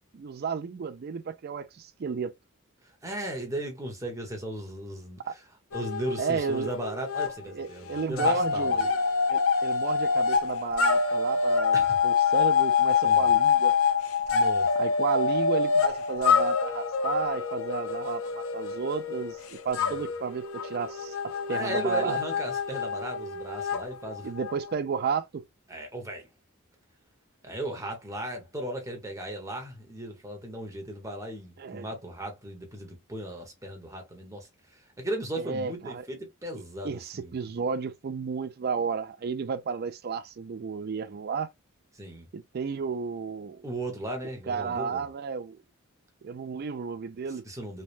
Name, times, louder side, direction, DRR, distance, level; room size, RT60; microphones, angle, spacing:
voice 1, 0.1-2.3 5.2-5.4 6.2-6.7 7.5-8.9 9.3-13.8 14.8-22.2 24.2-25.4 31.6-31.9 35.4-36.0 36.8-41.5 42.3-43.6 44.5-45.6 46.2-47.4, right 5 dB, 50° right, 0.4 m, -32 dB
voice 2, 3.0-5.2 5.7-8.8 11.7-12.0 13.0-13.3 14.3-14.7 19.8-20.1 21.5-24.3 25.7-26.3 27.4-37.3 41.9-42.3 43.6-45.1 47.4-47.8, right 1 dB, 15° right, 1.0 m, -36 dB
overblow echo, 5.7-7.3 7.6-24.7, left 5 dB, 85° left, 0.6 m, -26 dB
3.2 x 2.2 x 2.5 m
head